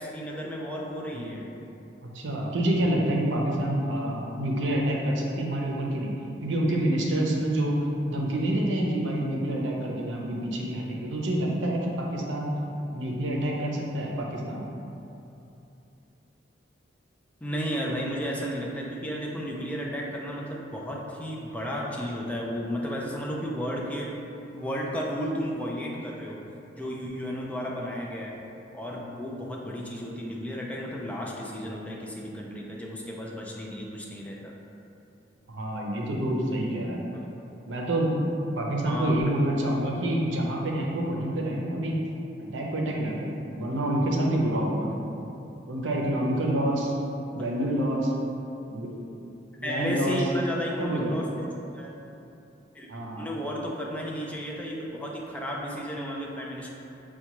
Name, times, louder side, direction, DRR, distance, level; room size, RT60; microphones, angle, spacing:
voice 1, 0.0-1.5 17.4-24.1 24.5-26.4 26.8-28.4 28.7-34.5 38.9-39.2 49.6-51.5 51.7-52.0 52.7-56.7, equal, 10° left, -3 dB, 0.3 m, -33 dB
voice 2, 2.0-7.8 8.1-12.5 12.9-14.6 35.5-37.0 37.7-42.0 42.4-44.9 45.7-46.9 47.3-48.1 48.7-48.9 49.6-50.2 50.8-51.3 52.9-53.3, right 1 dB, 85° right, -2 dB, 0.6 m, -27 dB
5.6 x 2.2 x 2.9 m, 2.8 s
head